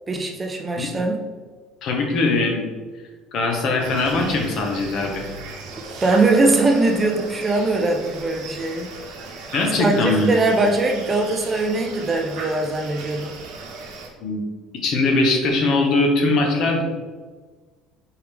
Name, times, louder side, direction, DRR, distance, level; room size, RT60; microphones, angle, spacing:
voice 1, 0.1-1.2 6.0-8.9 9.8-13.4, right 2 dB, 20° right, 2 dB, 0.4 m, -21 dB
voice 2, 1.8-2.7 3.3-5.2 9.5-10.3 14.2-14.4 14.8-16.8, left 2 dB, 50° left, 2 dB, 0.9 m, -21 dB
sound 1, 3.8-14.1, right 3 dB, 80° right, 0.9 m, -36 dB
4.5 x 3.5 x 3.4 m, 1.4 s
cardioid pair, 150°, 0 cm